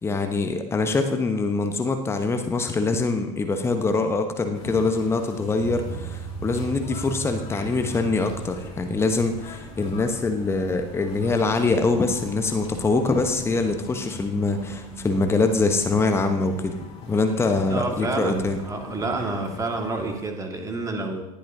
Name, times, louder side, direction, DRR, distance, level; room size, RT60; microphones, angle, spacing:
voice 1, 0.0-16.7 17.1-18.6, left 3 dB, 15° left, 6 dB, 1.1 m, -24 dB
sound 1, 4.5-20.2, left 4 dB, 30° left, 3.9 m, -41 dB
sound 2, 5.5-16.5, right 7 dB, 40° right, 2.0 m, -40 dB
voice 2, 17.7-21.2, right 3 dB, 15° right, 3 dB, 2.0 m, -29 dB
18.0 x 12.0 x 2.8 m, 0.95 s
figure-of-eight pair, 80°, 19 cm